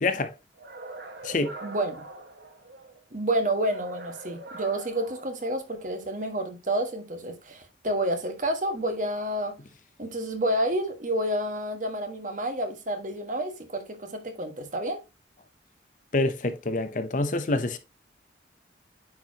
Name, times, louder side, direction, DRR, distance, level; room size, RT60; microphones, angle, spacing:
voice 1, 0.0-0.4 1.2-1.5 16.1-17.8, left 2 dB, 45° left, 0.7 m, -26 dB
sound 1, 0.6-3.0 3.6-6.0, right 2 dB, 60° right, 1.4 m, -43 dB
voice 2, 1.6-2.0 3.1-9.5 10.0-15.0, right 1 dB, 40° right, 1.5 m, -29 dB
9.3 x 4.7 x 2.8 m
head